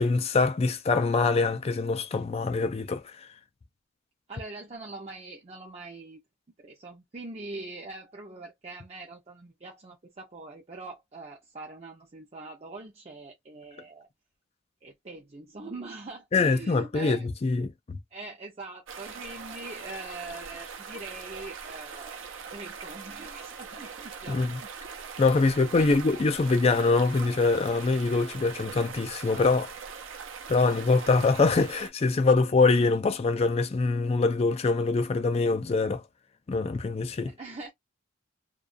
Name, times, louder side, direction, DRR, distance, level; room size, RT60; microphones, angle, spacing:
voice 1, 0.0-3.3 16.3-18.0 24.3-24.6 25.2-29.7 30.5-36.0 36.5-37.3, left 3 dB, 30° left, 0.4 m, -24 dB
voice 2, 4.3-6.2 6.6-14.1 14.8-17.3 18.1-24.7 25.3-25.9 37.2-37.7, right 2 dB, 30° right, 0.6 m, -43 dB
sound 1, 18.9-31.9, right 6 dB, 75° right, 0.6 m, -42 dB
2.3 x 2.3 x 2.4 m
head